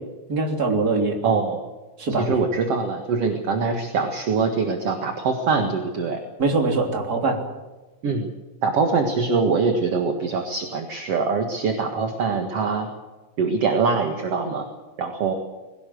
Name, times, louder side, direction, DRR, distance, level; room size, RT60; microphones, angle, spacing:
voice 1, 0.3-1.2 2.0-2.3 6.4-7.4, right 3 dB, 30° right, 2 dB, 3.7 m, -22 dB
voice 2, 1.2-1.6 2.2-6.2 8.0-8.3 8.6-12.9 13.4-14.7 15.0-15.3, right 4 dB, 55° right, 4 dB, 2.6 m, -23 dB
21.5 x 18.5 x 7.8 m, 1.2 s
omnidirectional pair, 3.5 m